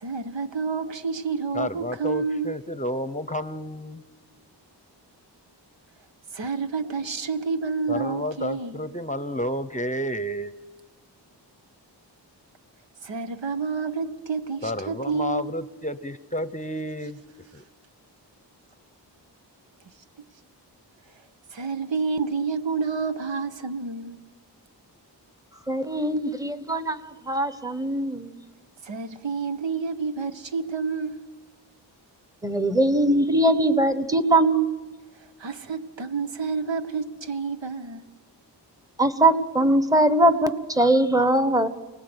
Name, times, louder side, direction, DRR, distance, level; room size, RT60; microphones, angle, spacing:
voice 1, 0.0-2.5 6.3-8.8 13.0-15.5 21.5-24.2 28.8-31.2 35.4-38.0, right 5 dB, 90° right, 1.5 m, -29 dB
voice 2, 1.5-4.0 7.9-10.5 14.6-17.2 17.5-17.6, equal, 15° left, 0.8 m, -31 dB
voice 3, 25.7-28.4 32.4-34.7 39.0-41.7, right 1 dB, 10° right, 1.3 m, -21 dB
29.5 x 20.0 x 8.1 m
wide cardioid pair, 115°, 43 cm